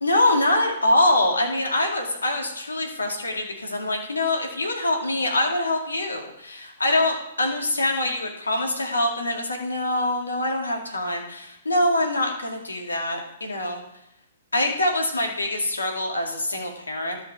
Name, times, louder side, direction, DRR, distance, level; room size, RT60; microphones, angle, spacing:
voice 1, 0.0-13.8 14.5-17.2, left 1 dB, 80° left, 2 dB, 2.0 m, -24 dB
12.5 x 5.2 x 4.7 m, 0.85 s
figure-of-eight pair, 115°, 0 cm